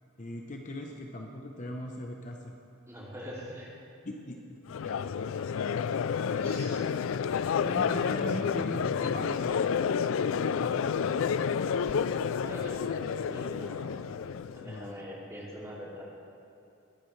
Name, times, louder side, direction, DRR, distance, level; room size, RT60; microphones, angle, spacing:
voice 1, 0.2-2.6 4.0-4.6 4.8-5.0 7.6-11.1 14.6-15.1, left 1 dB, 40° left, 1 dB, 0.8 m, -40 dB
voice 2, 2.9-3.7 6.2-6.8 12.3-13.9 14.5-16.0, equal, 15° right, -6 dB, 2.7 m, -43 dB
Crowd, 4.7-14.9, left 6 dB, 70° left, 0.3 m, -30 dB
20.5 x 10.0 x 3.3 m, 2.7 s
head